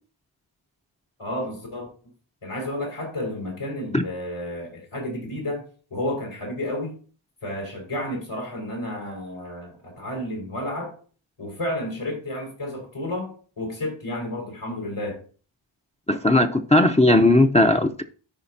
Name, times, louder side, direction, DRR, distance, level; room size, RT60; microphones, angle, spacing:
voice 1, 1.2-1.9 2.4-5.6 5.9-7.0 7.4-10.9 11.4-15.2, left 1 dB, 80° left, 4.7 m, -31 dB
voice 2, 16.1-18.0, left 1 dB, 15° left, 0.6 m, -17 dB
14.5 x 4.9 x 2.7 m
cardioid pair, 45°, 49 cm